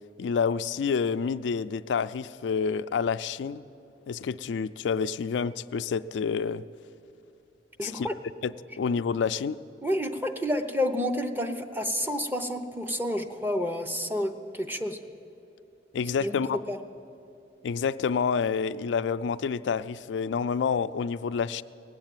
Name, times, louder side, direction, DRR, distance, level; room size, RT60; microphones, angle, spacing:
voice 1, 0.2-3.6 4.1-6.6 7.8-8.1 8.4-9.6 15.9-16.6 17.6-21.6, left 6 dB, 85° left, 12 dB, 0.4 m, -28 dB
voice 2, 7.8-8.2 9.8-15.0 16.2-16.8, equal, 10° right, 7 dB, 0.7 m, -29 dB
18.0 x 8.1 x 9.1 m, 2.7 s
head